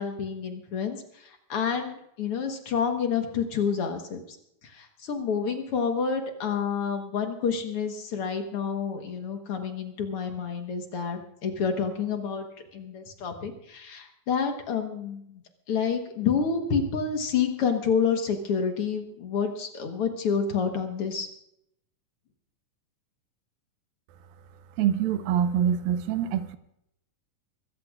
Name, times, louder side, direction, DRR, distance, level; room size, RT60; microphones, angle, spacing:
voice 1, 0.0-4.2 4.6-12.5 12.7-15.2 15.7-21.3, left 6 dB, 55° left, 5 dB, 1.7 m, -28 dB
voice 2, 24.8-26.6, right 9 dB, 85° right, 11 dB, 2.6 m, -25 dB
23.5 x 14.5 x 2.4 m, 0.76 s
omnidirectional pair, 4.0 m